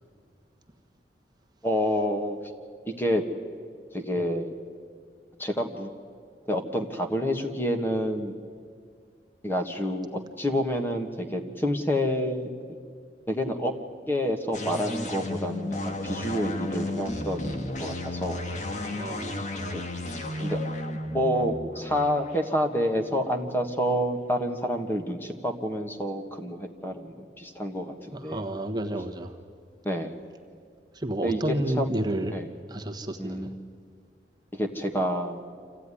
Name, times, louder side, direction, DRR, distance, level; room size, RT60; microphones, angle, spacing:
voice 1, 1.6-2.4 3.0-3.2 3.9-4.5 5.4-5.9 6.5-8.4 9.4-12.5 13.3-13.7 14.1-18.4 18.7-18.9 19.7-19.8 20.4-20.6 21.1-28.4 29.8-30.1 31.2-31.4 31.8-31.9 32.3-32.5 33.2-33.6 34.5-35.4, equal, 10° left, 5 dB, 1.4 m, -28 dB
sound 1, 14.5-24.0, left 1 dB, 45° left, 1.5 m, -34 dB
voice 2, 18.9-19.5 28.1-29.4 30.9-32.4 32.7-33.5, right 1 dB, 25° right, 4 dB, 1.3 m, -31 dB
26.0 x 15.5 x 9.9 m, 2.2 s
head